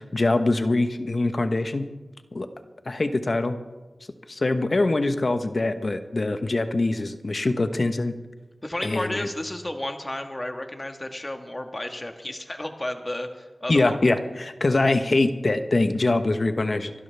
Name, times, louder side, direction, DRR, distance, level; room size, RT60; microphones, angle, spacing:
voice 1, 0.0-1.9 2.3-2.5 2.9-3.6 4.3-8.1 8.8-9.3 13.7-16.9, left 2 dB, 50° left, 9 dB, 1.0 m, -23 dB
voice 2, 8.6-14.0, left 1 dB, 25° left, 5 dB, 1.5 m, -32 dB
25.5 x 12.0 x 3.4 m, 1.2 s
wide cardioid pair, 70°, 0 cm